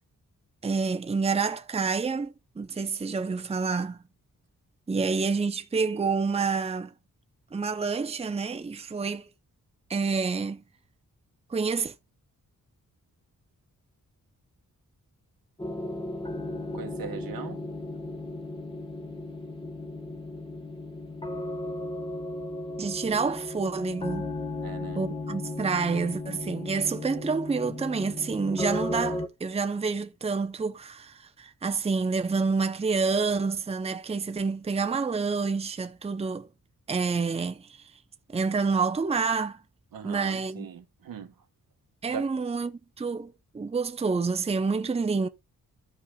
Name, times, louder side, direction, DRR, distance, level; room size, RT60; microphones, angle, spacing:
voice 1, 0.6-4.0 4.9-6.9 7.5-9.2 9.9-10.6 11.5-11.9 22.8-24.3 24.9-36.5 36.9-37.8 38.3-39.6 40.0-40.7 42.0-45.3, right 4 dB, 20° right, 0.6 m, -28 dB
sound 1, 15.6-29.3, left 2 dB, 15° left, 1.1 m, -35 dB
voice 2, 16.7-17.6 24.6-25.0 39.9-41.3 42.1-42.3, right 6 dB, 85° right, 1.3 m, -39 dB
14.5 x 5.5 x 2.3 m
wide cardioid pair, 135°, 34 cm